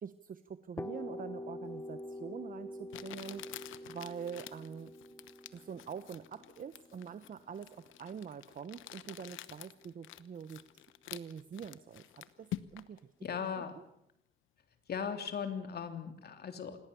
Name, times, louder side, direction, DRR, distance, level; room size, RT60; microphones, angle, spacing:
voice 1, 0.0-3.4 3.9-4.9 5.5-13.0 13.6-13.7, right 7 dB, 45° right, 12 dB, 1.0 m, -45 dB
sound 1, 0.8-8.5, left 1 dB, 10° left, 1.2 m, -46 dB
Crumpling crinkling, 2.0-2.1 2.9-13.0, left 13 dB, 85° left, 1.0 m, -48 dB
voice 2, 13.2-13.7 14.9-16.8, left 7 dB, 55° left, 7 dB, 3.2 m, -38 dB
26.5 x 19.5 x 7.0 m, 0.80 s
cardioid pair, 90°, 20 cm